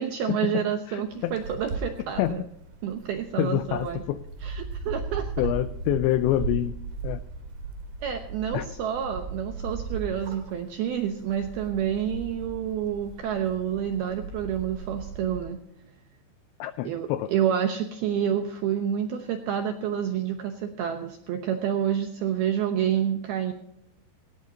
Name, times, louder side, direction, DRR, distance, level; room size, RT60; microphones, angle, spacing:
voice 1, 0.0-2.4 2.8-4.0 4.4-5.5 8.0-15.6 16.8-23.5, right 9 dB, 80° right, 5 dB, 2.2 m, -28 dB
voice 2, 0.9-1.4 2.2-2.5 3.4-4.2 5.4-6.7 7.0-7.2 8.5-8.7 16.6-17.3, left 14 dB, 85° left, 12 dB, 2.5 m, -26 dB
sound 1, 1.0-15.4, right 4 dB, 55° right, 4.0 m, -37 dB
19.0 x 17.5 x 2.8 m, 0.79 s
omnidirectional pair, 5.8 m